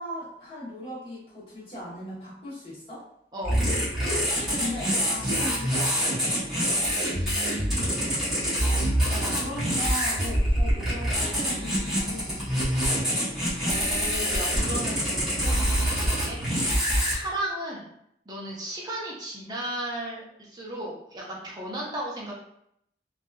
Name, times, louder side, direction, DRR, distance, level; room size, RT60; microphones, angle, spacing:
voice 1, 0.0-3.1 4.5-6.2 9.1-13.0, equal, 30° left, -9 dB, 1.1 m, -38 dB
voice 2, 3.3-3.7 6.9-7.7 13.6-16.4 17.0-17.9 18.3-22.3, right 1 dB, 20° right, -4 dB, 0.6 m, -35 dB
sound 1, 3.4-17.1, equal, 5° right, 0.9 m, -25 dB
2.7 x 2.4 x 2.3 m, 0.74 s
head